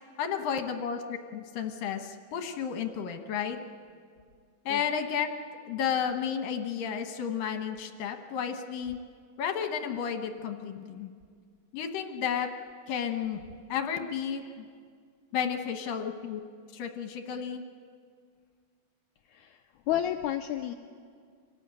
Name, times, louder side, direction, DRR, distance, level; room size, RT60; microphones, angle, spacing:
voice 1, 0.2-3.6 4.7-5.3 5.7-9.0 9.4-11.1 11.7-12.5 12.9-13.4 13.7-14.7 15.3-16.4 16.7-17.6, left 7 dB, 70° left, 6 dB, 2.8 m, -32 dB
voice 2, 19.9-20.7, left 11 dB, 85° left, 6 dB, 1.7 m, -31 dB
26.0 x 19.0 x 8.9 m, 2.1 s
omnidirectional pair, 4.4 m